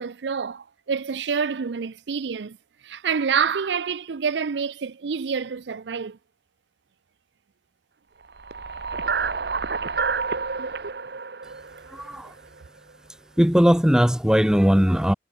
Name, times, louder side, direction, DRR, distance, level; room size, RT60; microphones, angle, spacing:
voice 1, 0.0-2.6 2.8-6.2, right 6 dB, 90° right, 0.5 m, -27 dB
sound 1, 8.3-12.6, right 5 dB, 70° right, 1.0 m, -29 dB
voice 2, 11.9-12.3 13.4-15.1, equal, 5° right, 0.6 m, -19 dB
head